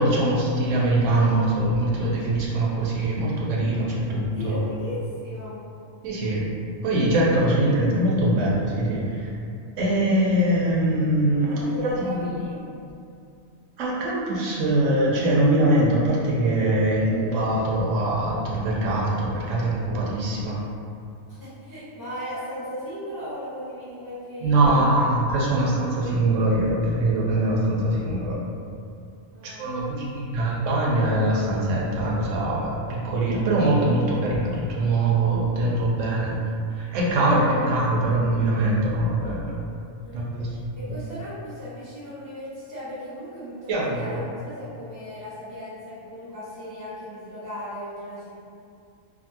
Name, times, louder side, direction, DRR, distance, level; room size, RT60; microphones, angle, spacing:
voice 1, 0.0-4.7 6.0-6.4 6.8-9.3 9.8-12.3 13.8-20.6 24.4-28.4 29.6-36.4 36.7-39.5 40.1-40.5 43.7-44.0, right 1 dB, 75° right, -5 dB, 0.9 m, -22 dB
voice 2, 3.9-5.7 11.4-12.6 21.3-25.0 25.5-25.6 29.3-30.1 37.6-37.7 40.0-40.4 40.7-48.4, equal, 20° left, -11 dB, 0.6 m, -37 dB
2.6 x 2.5 x 2.7 m, 2.5 s
omnidirectional pair, 1.4 m